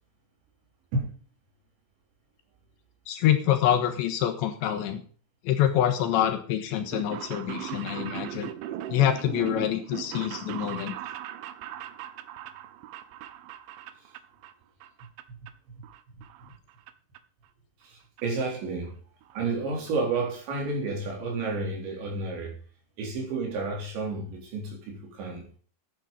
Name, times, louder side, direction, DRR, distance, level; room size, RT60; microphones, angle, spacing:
voice 1, 3.1-5.0 5.4-8.5 8.9-10.9, left 11 dB, 75° left, 3.1 m, -26 dB
sound 1, 6.8-14.5 14.8-15.5 15.8-16.9 17.2-17.3 18.2-18.3 18.5-18.6 18.8-18.9 19.2-19.5 19.9-20.0 20.2-20.3, right 12 dB, 80° right, 3.1 m, -39 dB
voice 2, 15.3-15.9 17.8-19.0 19.3-22.6 23.0-25.4, right 3 dB, 65° right, 5.9 m, -31 dB
12.0 x 9.1 x 5.4 m
omnidirectional pair, 5.7 m